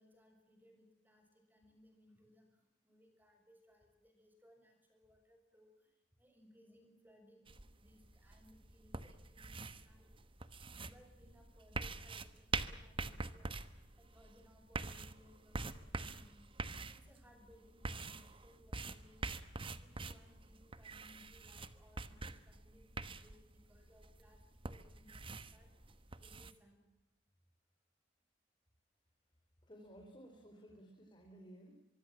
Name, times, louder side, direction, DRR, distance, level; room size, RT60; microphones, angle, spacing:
voice 1, 0.0-10.5 10.7-19.4 19.8-24.4 24.7-26.8, equal, 10° right, 4 dB, 6.4 m, -66 dB
sound 1, 7.5-26.5, right 3 dB, 25° right, 1.2 m, -45 dB
voice 2, 29.6-31.8, right 1 dB, 25° left, 1 dB, 4.4 m, -56 dB
24.5 x 24.0 x 7.5 m, 0.94 s
head